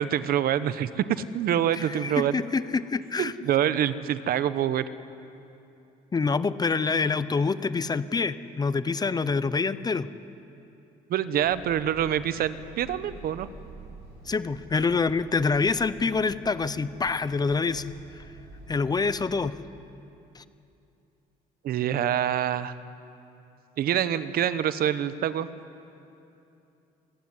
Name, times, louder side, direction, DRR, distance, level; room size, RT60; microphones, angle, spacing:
voice 1, 0.0-2.4 3.2-4.8 11.1-13.5 21.6-22.7 23.8-25.5, right 10 dB, 60° right, 14 dB, 1.0 m, -26 dB
voice 2, 1.7-3.3 6.1-10.1 14.3-17.9 18.7-19.5 20.4-20.5, left 4 dB, 25° left, 14 dB, 0.8 m, -26 dB
sound 1, 11.4-19.5, right 3 dB, 80° right, 6.7 m, -48 dB
25.5 x 15.5 x 9.7 m, 2.8 s
cardioid pair, 110°, 17 cm